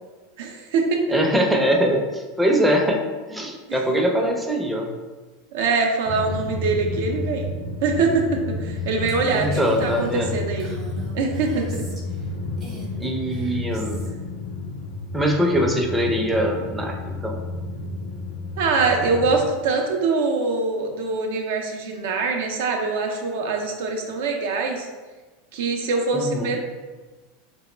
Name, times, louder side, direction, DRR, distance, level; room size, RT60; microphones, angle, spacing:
voice 1, 0.4-1.2 5.5-7.5 7.8-10.7 11.1-11.8 18.6-24.9 25.5-26.6, right 4 dB, 70° right, 2 dB, 0.4 m, -23 dB
voice 2, 1.1-3.0 3.3-4.9 9.3-10.3 13.0-14.0 15.1-17.4 26.1-26.6, equal, 5° right, 1 dB, 0.4 m, -22 dB
Drum, 6.1-19.5, left 2 dB, 70° left, 0.5 m, -31 dB
Female speech woman speaking, 9.1-12.3 12.6-14.1, equal, 40° right, 0.8 m, -42 dB
2.3 x 2.0 x 3.1 m, 1.3 s
hypercardioid pair, 100°, 0 cm